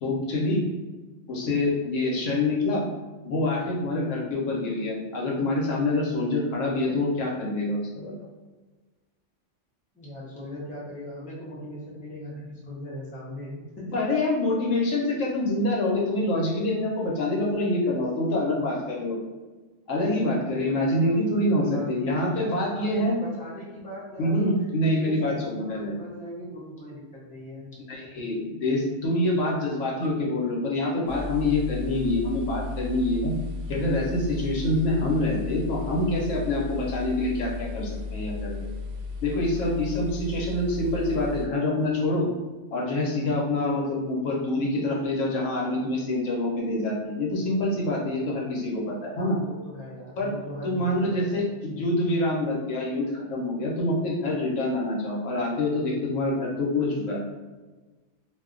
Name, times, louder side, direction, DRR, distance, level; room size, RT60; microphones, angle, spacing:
voice 1, 0.0-0.6 1.3-2.8 3.2-8.1 13.9-19.2 19.9-23.2 24.2-25.9 27.9-33.3 33.7-38.6 39.2-42.3 42.7-49.4 50.2-50.3 50.6-57.2, left 1 dB, 85° left, -2 dB, 1.1 m, -26 dB
voice 2, 9.9-14.0 18.5-19.0 20.5-24.5 24.9-27.7 49.2-51.4, left 1 dB, 10° left, -6 dB, 0.5 m, -40 dB
sound 1, 31.1-41.5, left 4 dB, 80° right, 0.9 m, -35 dB
2.6 x 2.1 x 3.6 m, 1.2 s
omnidirectional pair, 1.3 m